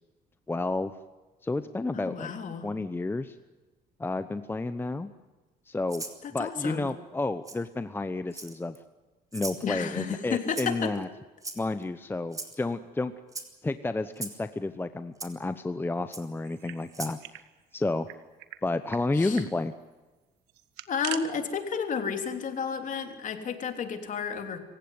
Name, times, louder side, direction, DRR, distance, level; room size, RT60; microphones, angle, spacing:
voice 1, 0.5-0.9 1.4-2.3 2.6-3.4 4.0-5.1 5.7-6.0 6.3-8.7 9.3-11.1 11.6-13.1 13.6-17.2 17.7-18.1 18.6-19.7, left 2 dB, 15° left, 11 dB, 0.9 m, -31 dB
voice 2, 1.9-2.7 6.2-6.9 9.6-10.9 19.1-19.4 20.9-24.6, left 6 dB, 50° left, 6 dB, 3.3 m, -32 dB
Rattle (instrument), 5.9-6.2 7.4-7.6 8.3-8.8 9.3-9.6 10.5-10.9 11.4-11.8 12.3-12.6 13.3-13.5 14.2-14.4 15.2-15.3 16.1-16.2 16.9-17.2, right 3 dB, 20° right, 3.2 m, -38 dB
sound 1, 16.4-17.4 17.7-17.8 18.1-18.6 18.9-19.0 19.3-19.5 20.5-21.2, right 14 dB, 85° right, 1.5 m, -40 dB
26.5 x 16.0 x 9.6 m, 1.2 s
cardioid pair, 110°, 17 cm